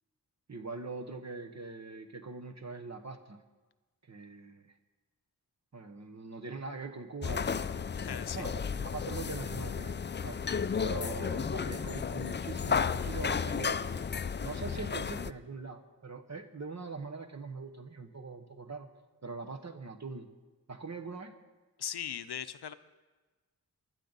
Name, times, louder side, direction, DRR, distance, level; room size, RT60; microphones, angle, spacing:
voice 1, 0.5-3.4 4.0-4.7 5.7-7.8 8.3-8.5 8.8-10.4 10.8-13.9 14.4-18.9 19.2-20.3 20.7-21.4, right 4 dB, 45° right, 6 dB, 1.1 m, -42 dB
sound 1, 7.2-15.3, left 6 dB, 30° left, 0.4 m, -33 dB
voice 2, 8.0-8.4 21.8-22.7, left 9 dB, 85° left, 12 dB, 0.6 m, -38 dB
20.5 x 12.0 x 4.0 m, 1.2 s
cardioid pair, 40°, 38 cm